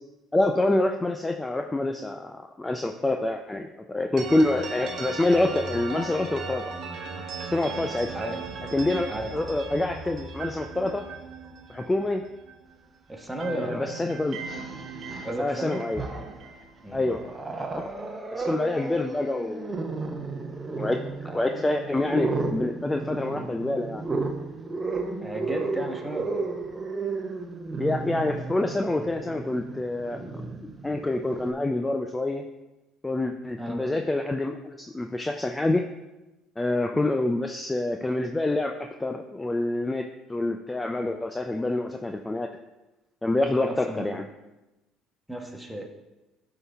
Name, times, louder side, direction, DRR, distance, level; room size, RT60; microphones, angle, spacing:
voice 1, 0.3-6.6 7.5-8.1 8.7-11.0 11.7-12.2 13.5-14.4 15.4-16.0 16.9-17.2 17.8-17.9 18.3-19.9 20.8-24.0 27.8-30.2 30.6-32.4 33.0-35.8 36.6-38.7 39.0-40.0 40.3-42.5 43.2-44.2, left 2 dB, 15° left, 4 dB, 0.5 m, -27 dB
sound 1, 4.2-12.9 13.2-17.3, right 4 dB, 60° right, 1.0 m, -38 dB
voice 2, 13.1-14.0 15.2-15.9 16.8-17.0 21.3-21.5 25.2-26.4 33.6-33.9 43.6-44.2 45.3-45.9, right 1 dB, 5° right, 1 dB, 1.4 m, -34 dB
Growling, 13.3-13.4 14.3-15.4 15.8-16.5 16.9-31.5, right 3 dB, 25° right, 1.0 m, -33 dB
11.0 x 3.9 x 3.5 m, 1.0 s
hypercardioid pair, 65°, 0 cm